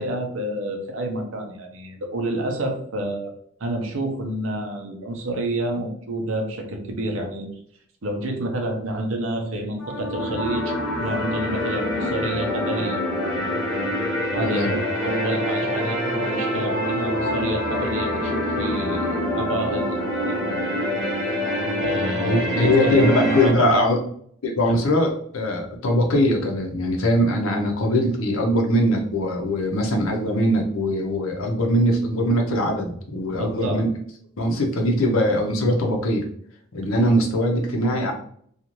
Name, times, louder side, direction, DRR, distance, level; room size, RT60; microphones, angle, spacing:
voice 1, 0.0-3.3 3.6-7.5 8.0-13.0 14.3-20.8 21.8-23.8 24.6-24.8 33.3-33.8 36.8-36.9, right 1 dB, 70° right, 3 dB, 0.6 m, -29 dB
sound 1, 9.8-23.5, equal, 5° left, 0.9 m, -25 dB
voice 2, 14.4-14.8 22.2-24.0 24.4-33.9 34.4-36.2 36.7-38.1, left 1 dB, 75° left, 2 dB, 0.6 m, -21 dB
2.5 x 2.4 x 3.0 m, 0.63 s
head